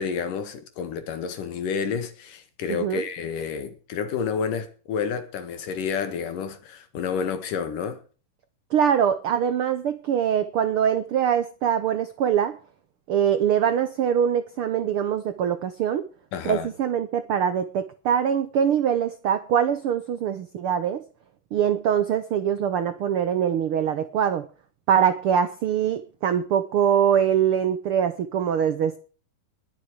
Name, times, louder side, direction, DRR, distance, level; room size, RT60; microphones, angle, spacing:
voice 1, 0.0-8.0 16.3-16.7, left 6 dB, 80° left, 3.3 m, -30 dB
voice 2, 2.7-3.0 8.7-12.6 13.1-16.0 16.4-21.0 21.5-24.5 24.9-29.0, right 8 dB, 80° right, 1.2 m, -23 dB
21.0 x 7.1 x 4.7 m
omnidirectional pair, 3.8 m